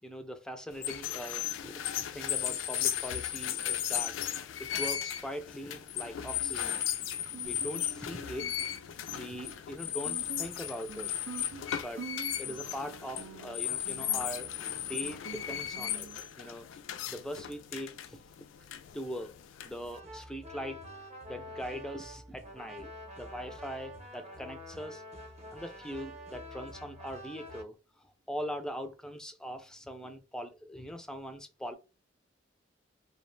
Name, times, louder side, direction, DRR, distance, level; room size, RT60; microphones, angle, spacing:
voice 1, 0.0-1.8 2.1-6.8 7.4-8.5 9.1-11.1 11.8-12.1 12.4-14.5 14.7-16.1 16.4-16.8 17.1-18.2 18.9-19.3 19.6-20.8 21.3-25.0 25.5-31.8, equal, 5° left, 0.3 m, -41 dB
sound 1, 0.7-20.0, left 11 dB, 85° left, 0.3 m, -36 dB
Guitar, 6.2-16.2, right 6 dB, 90° right, 0.5 m, -48 dB
sound 2, 19.7-27.6, equal, 35° right, 0.7 m, -47 dB
2.4 x 2.0 x 3.1 m
head